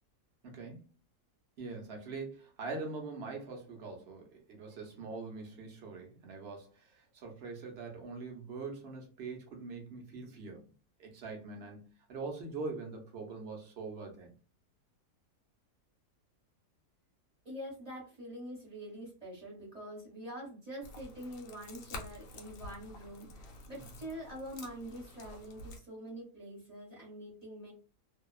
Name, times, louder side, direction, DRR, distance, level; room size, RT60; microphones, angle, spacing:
voice 1, 0.4-0.9 1.6-10.7 11.0-14.3 23.7-24.0, right 4 dB, 55° right, 0.8 m, -43 dB
voice 2, 17.4-27.7, equal, 25° right, 1.2 m, -45 dB
sound 1, 20.8-25.8, left 2 dB, 65° left, 1.0 m, -49 dB
2.7 x 2.3 x 2.3 m
omnidirectional pair, 1.7 m